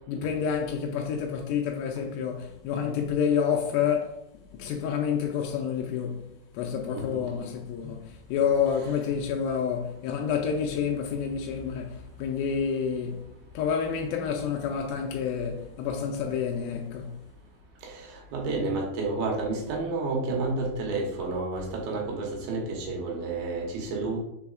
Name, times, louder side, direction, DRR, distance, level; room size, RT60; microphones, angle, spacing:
voice 1, 0.1-4.2 4.5-17.2, left 7 dB, 85° left, 2.1 m, -29 dB
voice 2, 17.8-24.2, right 3 dB, 75° right, 2.7 m, -30 dB
5.4 x 4.1 x 2.4 m
omnidirectional pair, 4.7 m